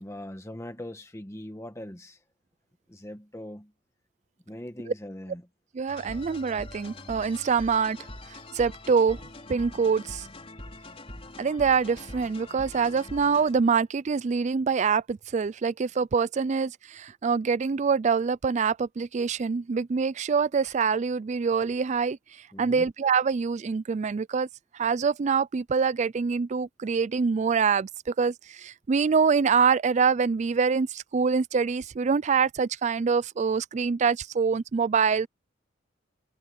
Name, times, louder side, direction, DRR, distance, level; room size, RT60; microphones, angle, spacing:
voice 1, 0.0-2.2 2.9-3.7 4.5-5.4 22.5-22.9, left 1 dB, 15° left, 1.3 m, -41 dB
voice 2, 5.7-8.0 8.5-9.2 9.5-10.3 11.4-22.2 22.6-24.5 24.7-35.3, right 5 dB, 35° right, 0.4 m, -25 dB
sound 1, 5.9-13.8, left 1 dB, 30° left, 4.4 m, -43 dB
head